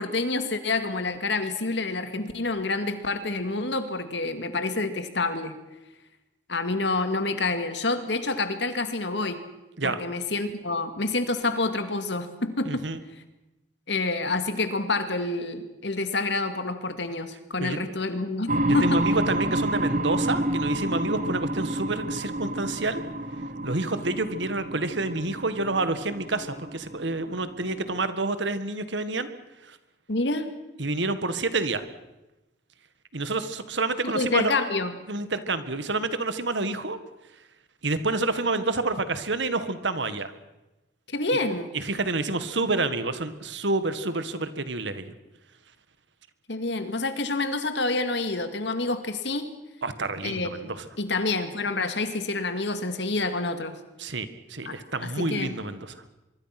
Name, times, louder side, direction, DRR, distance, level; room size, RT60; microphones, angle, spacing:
voice 1, 0.0-5.6 6.5-9.4 9.8-12.9 13.9-19.0 30.1-30.5 34.0-34.9 41.1-41.7 46.5-49.5 50.2-50.7 51.0-53.8 54.7-54.8 55.0-55.5, left 3 dB, 70° left, 9 dB, 2.2 m, -28 dB
voice 2, 12.6-13.0 17.6-17.8 18.8-23.0 23.6-29.3 29.6-29.8 30.8-31.8 33.1-34.5 35.1-37.0 37.8-40.3 41.7-45.1 49.8-50.8 54.0-56.1, right 3 dB, 70° right, 12 dB, 1.7 m, -28 dB
sound 1, 18.5-28.0, right 1 dB, 40° right, 1.0 m, -29 dB
24.5 x 23.0 x 6.0 m, 1.0 s
head